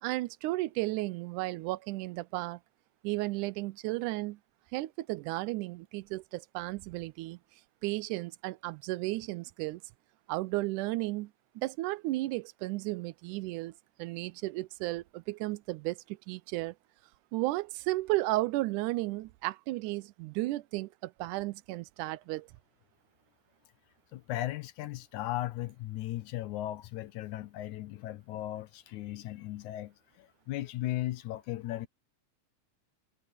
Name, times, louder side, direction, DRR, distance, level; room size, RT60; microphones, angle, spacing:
voice 1, 0.0-2.6 3.0-4.4 4.7-7.4 7.8-9.8 10.3-16.8 17.3-22.5, right 19 dB, 80° right, 2.0 m, -34 dB
voice 2, 24.1-31.9, left 15 dB, 75° left, 2.2 m, -37 dB
omnidirectional pair, 3.7 m